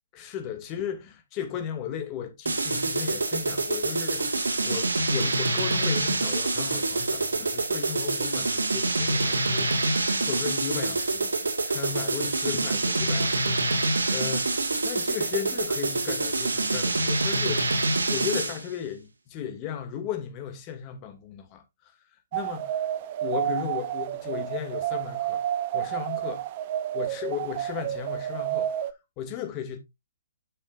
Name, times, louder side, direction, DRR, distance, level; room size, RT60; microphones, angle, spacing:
voice 1, 0.1-21.6 22.3-22.8 23.2-25.4 25.7-26.4 26.9-28.7 29.2-29.8, left 9 dB, 30° left, 2.2 m, -36 dB
sound 1, 2.5-18.7, right 2 dB, 85° right, 2.0 m, -26 dB
sound 2, 22.3-28.9, right 12 dB, 45° right, 0.8 m, -30 dB
10.5 x 6.7 x 2.5 m
hypercardioid pair, 135°, 0 cm